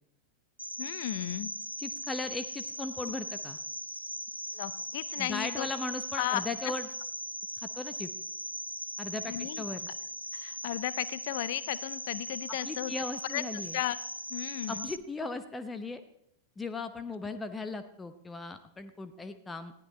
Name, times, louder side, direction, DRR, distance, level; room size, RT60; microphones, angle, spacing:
Cricket, 0.6-15.0, equal, 90° right, 0.5 m, -39 dB
voice 1, 0.8-1.5 4.5-5.7 6.2-6.7 9.3-9.6 10.3-12.9 13.3-13.4 13.7-14.0 14.3-14.9, left 15 dB, 50° left, 18 dB, 0.6 m, -35 dB
voice 2, 1.8-3.6 5.2-6.9 7.8-8.1 9.0-9.9 12.6-13.8 14.7-16.0 16.6-19.7, left 3 dB, 10° left, 10 dB, 0.9 m, -37 dB
20.0 x 15.0 x 3.2 m, 0.75 s
figure-of-eight pair, 90°, 0 cm